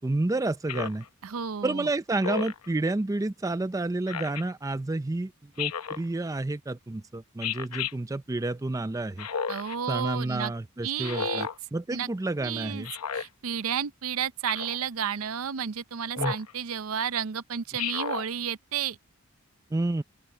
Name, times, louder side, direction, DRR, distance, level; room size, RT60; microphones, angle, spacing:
voice 1, 0.0-1.0 1.6-9.3 9.9-12.9 16.2-16.3 19.7-20.0, right 2 dB, 15° right, 0.4 m, -30 dB
Speech synthesizer, 0.7-1.1 2.2-2.7 4.1-4.4 5.6-6.0 7.4-7.9 9.2-9.8 11.0-11.6 12.8-13.3 14.5-14.8 16.1-16.5 17.8-18.3, left 7 dB, 85° left, 0.9 m, -32 dB
voice 2, 1.2-1.9 9.5-10.5 10.8-11.5 11.9-12.1 12.4-12.9 13.1-19.0, right 8 dB, 65° right, 0.6 m, -32 dB
open air
head